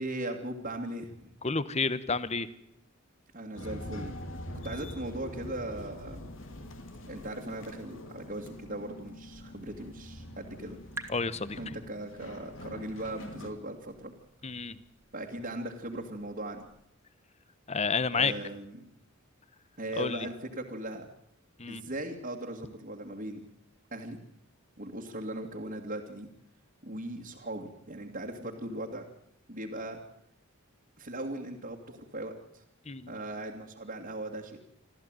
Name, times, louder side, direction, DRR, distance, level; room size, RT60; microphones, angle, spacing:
voice 1, 0.0-1.3 3.3-4.2 4.6-6.2 7.1-10.8 11.6-14.1 15.1-16.6 18.1-18.9 19.8-21.1 21.7-23.4 23.9-24.2 24.8-26.3 26.8-29.1 29.5-30.0 31.0-32.6 33.1-34.6, right 1 dB, 45° right, -2 dB, 2.3 m, -38 dB
voice 2, 1.4-2.5 11.1-11.8 14.4-14.8 17.7-18.3 20.0-20.3 21.6-21.8 32.9-33.2, left 4 dB, 30° left, 16 dB, 1.0 m, -30 dB
sound 1, 3.5-13.5, left 1 dB, 65° left, 2.5 m, -44 dB
sound 2, 9.0-16.9, right 3 dB, 10° right, 2.3 m, -52 dB
26.0 x 14.0 x 9.1 m, 0.78 s
head